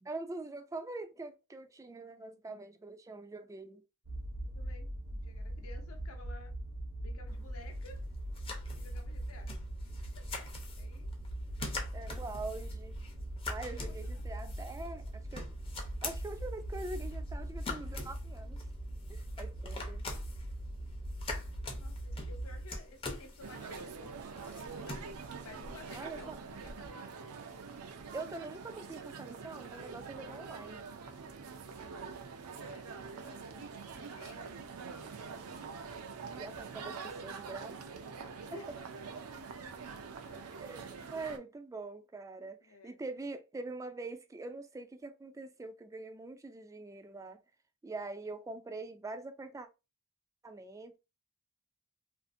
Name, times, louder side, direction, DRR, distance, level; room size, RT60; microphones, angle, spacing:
voice 1, 0.0-3.8 11.9-12.9 13.5-15.5 16.0-18.6 19.1-20.1 25.9-26.4 28.1-30.8 36.4-38.0 38.5-38.6 40.6-47.4 47.8-49.7 50.4-51.0, right 3 dB, 15° right, 0.3 m, -44 dB
sound 1, 4.0-22.7, right 1 dB, 65° right, 0.9 m, -41 dB
voice 2, 4.4-6.5 7.0-8.1 8.7-9.5 10.2-10.4 10.8-11.1 11.6-11.7 13.1-13.3 13.7-14.3 21.8-24.8 25.2-27.4 32.6-32.9 33.2-33.7 34.0-34.6 38.5-38.7 40.2-40.6 42.6-43.0, left 2 dB, 70° left, 0.7 m, -54 dB
sound 2, 7.3-26.9, left 3 dB, 25° left, 0.6 m, -46 dB
sound 3, 23.4-41.4, right 5 dB, 85° right, 0.5 m, -45 dB
2.6 x 2.4 x 2.5 m
head